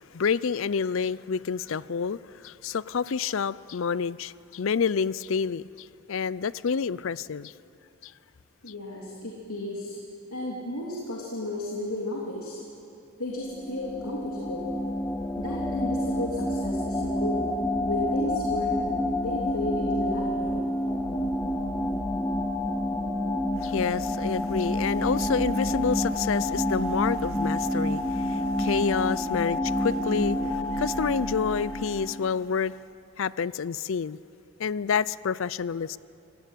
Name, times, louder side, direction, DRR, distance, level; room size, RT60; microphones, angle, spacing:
voice 1, 0.0-7.5 8.0-8.1 23.6-32.8 33.2-34.2 34.6-36.0, left 6 dB, 60° left, 0.4 m, -28 dB
voice 2, 8.6-10.0 10.3-12.6 13.2-14.7 15.4-17.5 17.9-18.7 19.2-20.7, left 1 dB, 80° left, 3.1 m, -33 dB
sound 1, 13.4-32.3, left 1 dB, 10° left, 0.9 m, -28 dB
27.0 x 17.0 x 9.2 m
head